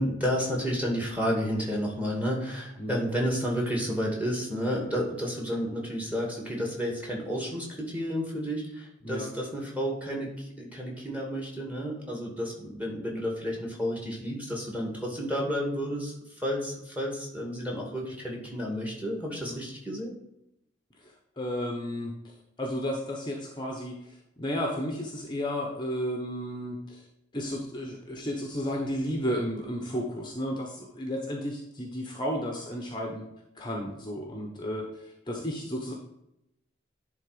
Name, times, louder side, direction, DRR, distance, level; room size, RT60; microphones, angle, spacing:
voice 1, 0.0-16.1 16.4-20.1, equal, 10° right, -2 dB, 2.2 m, -31 dB
voice 2, 21.0-22.1 22.6-27.0 27.3-33.2 33.6-35.9, equal, 25° left, 1 dB, 1.1 m, -33 dB
10.5 x 3.8 x 5.1 m, 0.84 s
head